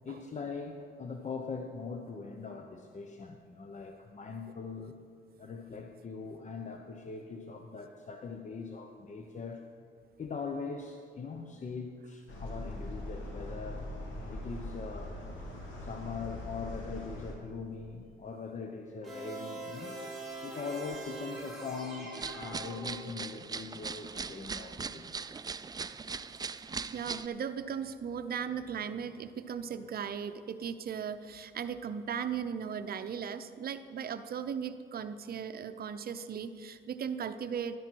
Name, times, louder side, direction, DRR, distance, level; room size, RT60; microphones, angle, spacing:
voice 1, 0.0-5.0 5.4-9.6 10.2-15.2 15.8-19.9 20.4-25.1, left 4 dB, 35° left, 4 dB, 0.8 m, -41 dB
sound 1, 12.3-17.3, left 1 dB, 75° left, 2.3 m, -41 dB
sound 2, 19.0-23.4, right 2 dB, ahead, 3.4 m, -43 dB
sound 3, 22.1-27.3, right 5 dB, 20° right, 0.3 m, -40 dB
voice 2, 26.9-37.8, right 7 dB, 50° right, 10 dB, 0.7 m, -37 dB
12.0 x 10.0 x 4.6 m, 2.3 s
cardioid pair, 90°, 20 cm